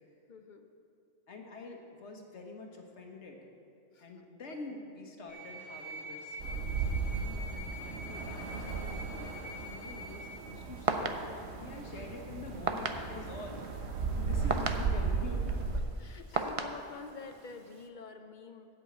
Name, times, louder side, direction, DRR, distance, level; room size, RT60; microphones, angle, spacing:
voice 1, 0.3-0.7 3.9-4.1 16.0-18.7, left 4 dB, 55° left, 7 dB, 0.6 m, -47 dB
voice 2, 1.3-3.4 4.0-15.6 16.3-16.5, left 3 dB, 75° left, 2 dB, 1.5 m, -47 dB
sound 1, 5.3-10.3, equal, 20° left, 2.5 m, -45 dB
sound 2, 6.4-15.8, right 4 dB, 70° right, 1.2 m, -36 dB
sound 3, 10.3-17.9, right 4 dB, 40° right, 0.5 m, -38 dB
8.5 x 8.0 x 8.0 m, 2.6 s
omnidirectional pair, 1.2 m